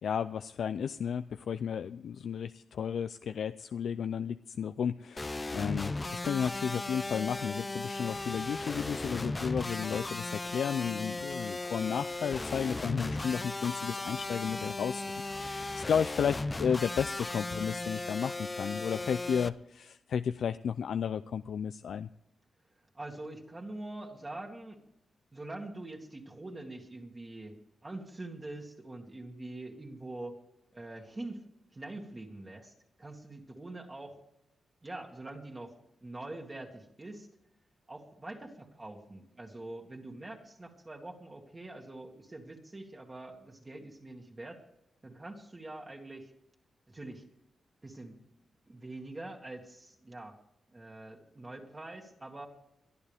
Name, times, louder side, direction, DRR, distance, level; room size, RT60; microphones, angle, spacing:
voice 1, 0.0-15.1 15.3-22.1, left 7 dB, 75° left, 11 dB, 0.4 m, -33 dB
sound 1, 5.2-19.5, left 2 dB, 20° left, 0.6 m, -36 dB
voice 2, 22.9-24.8 25.3-27.6 27.8-30.4 30.7-31.4 31.7-32.7 33.0-34.2 34.8-35.8 36.0-37.3 37.9-44.6 45.0-46.3 46.9-47.2 47.8-48.2 48.7-50.4 50.7-52.5, right 2 dB, 25° right, 0 dB, 2.0 m, -44 dB
22.5 x 12.0 x 3.5 m, 0.80 s
cardioid pair, 105°, 0 cm